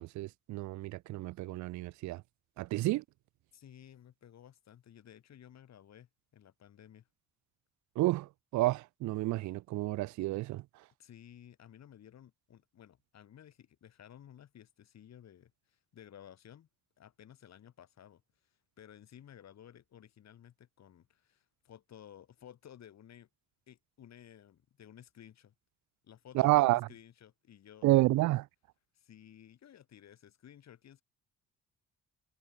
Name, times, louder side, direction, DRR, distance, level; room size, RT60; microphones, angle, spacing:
voice 1, 0.0-2.2 2.6-3.0 8.0-10.6 26.3-26.8 27.8-28.5, right 18 dB, 70° right, 0.4 m, -29 dB
voice 2, 3.5-7.1 11.0-16.7 17.0-18.2 18.8-23.3 23.7-25.5 26.0-27.9 28.9-31.0, left 10 dB, 60° left, 3.0 m, -55 dB
cardioid pair, 90°, 30 cm